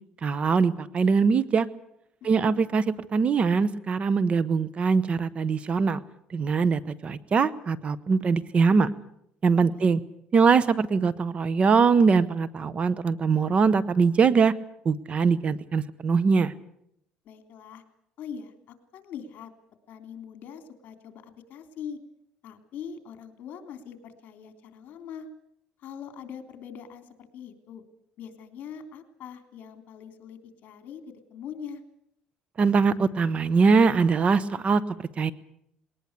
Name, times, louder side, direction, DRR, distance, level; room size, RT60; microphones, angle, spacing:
voice 1, 0.2-1.7 2.2-2.8 3.1-6.0 6.3-8.9 9.4-10.0 10.3-14.5 14.8-16.5 32.6-34.8 35.2-35.3, right 5 dB, 35° right, 18 dB, 1.0 m, -22 dB
voice 2, 9.5-10.0 17.3-17.8 18.2-19.5 19.9-22.0 22.4-25.3 25.8-27.8 28.2-31.8, left 7 dB, 60° left, 8 dB, 3.5 m, -42 dB
20.5 x 19.0 x 8.3 m, 0.74 s
cardioid pair, 120°, 3 cm